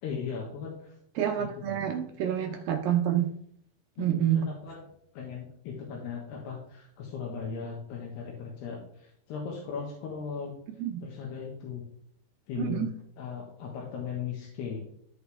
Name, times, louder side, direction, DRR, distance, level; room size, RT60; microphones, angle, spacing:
voice 1, 0.0-0.9 1.4-1.9 4.0-10.6 11.0-11.8 12.5-12.9 13.2-14.8, left 6 dB, 80° left, -2 dB, 3.5 m, -38 dB
voice 2, 1.2-3.3 4.0-4.4 10.8-11.0 12.6-12.9, right 10 dB, 75° right, 4 dB, 2.2 m, -28 dB
14.0 x 5.0 x 3.4 m, 0.68 s
omnidirectional pair, 4.7 m